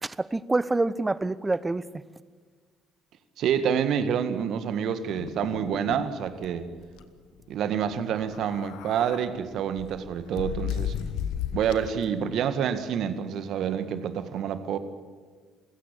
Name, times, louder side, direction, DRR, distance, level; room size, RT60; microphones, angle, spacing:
voice 1, 0.0-2.0, right 2 dB, 20° right, 18 dB, 0.9 m, -27 dB
voice 2, 3.4-6.7 7.5-10.9 11.5-14.8, right 8 dB, 60° right, 11 dB, 1.8 m, -28 dB
sound 1, 5.1-6.1 6.4-6.5 6.8-7.0 8.2-9.3 9.8-12.0, left 9 dB, 65° left, 1.2 m, -34 dB
28.0 x 16.5 x 8.8 m, 1.5 s
hypercardioid pair, 50°, 0 cm